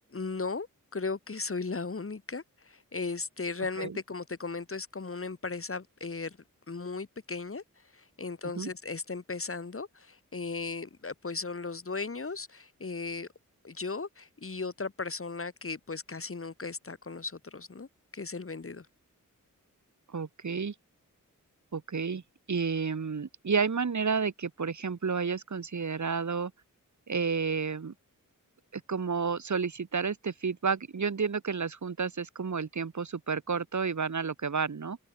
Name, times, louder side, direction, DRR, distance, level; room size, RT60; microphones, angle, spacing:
voice 1, 0.1-0.7 0.9-6.4 6.7-7.6 7.9-13.3 13.6-18.9, left 4 dB, 40° left, 5.9 m, -36 dB
voice 2, 20.1-20.7 21.7-22.2 22.5-26.5 27.1-27.9 28.7-35.0, right 5 dB, 60° right, 5.0 m, -31 dB
wide cardioid pair, 115°, 33 cm